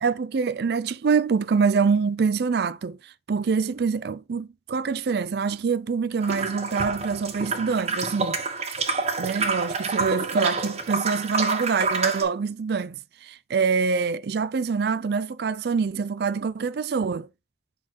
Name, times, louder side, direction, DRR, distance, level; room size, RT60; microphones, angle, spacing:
voice 1, 0.0-8.4 9.2-17.3, right 5 dB, 60° right, 0.4 m, -25 dB
sound 1, 6.2-12.2, right 4 dB, 35° right, 1.3 m, -28 dB
6.3 x 3.9 x 4.4 m
head